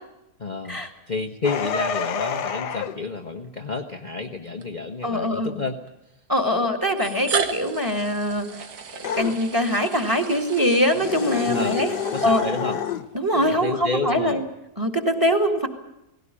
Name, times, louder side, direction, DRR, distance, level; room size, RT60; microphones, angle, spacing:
voice 1, 0.4-0.8 1.1-5.8 11.4-12.8 13.3-14.4, left 3 dB, 30° left, 3 dB, 1.2 m, -30 dB
sound 1, 1.4-3.0 9.0-9.4 11.0-13.1, left 7 dB, 85° left, 1.6 m, -28 dB
sound 2, 3.4-3.6 4.6-4.7 5.9-6.0 6.9-12.9, right 5 dB, 65° right, 1.8 m, -34 dB
voice 2, 5.0-5.6 6.3-8.5 8.9-11.9 12.2-12.4 13.1-14.4 14.8-15.7, equal, 10° right, 6 dB, 2.1 m, -22 dB
18.5 x 17.5 x 9.9 m, 0.89 s
omnidirectional pair, 1.8 m